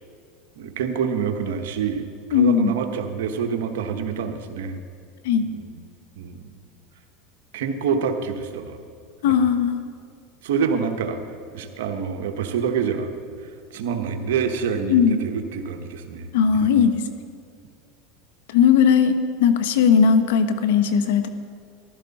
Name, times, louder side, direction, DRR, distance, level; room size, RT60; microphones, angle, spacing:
voice 1, 0.6-4.8 5.5-5.7 6.2-6.5 7.5-8.8 9.3-9.4 10.4-11.2 11.5-13.1 13.7-16.3 16.5-16.7, right 6 dB, 80° right, 6 dB, 1.1 m, -26 dB
voice 2, 2.3-2.8 5.2-5.5 9.2-9.8 14.9-15.2 16.3-17.0 18.5-21.3, left 7 dB, 80° left, 10 dB, 0.9 m, -18 dB
14.5 x 12.0 x 4.2 m, 2.3 s
supercardioid pair, 110°, 0 cm